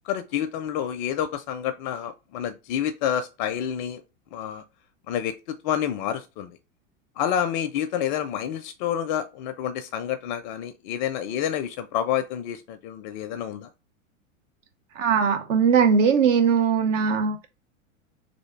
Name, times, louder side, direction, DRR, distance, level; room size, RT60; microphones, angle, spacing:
voice 1, 0.1-4.0 4.3-4.6 5.1-6.5 7.2-13.7, left 9 dB, 35° left, 0.4 m, -28 dB
voice 2, 15.0-17.4, right 6 dB, 65° right, 1.0 m, -20 dB
3.3 x 2.6 x 4.3 m
hypercardioid pair, 100°, 40 cm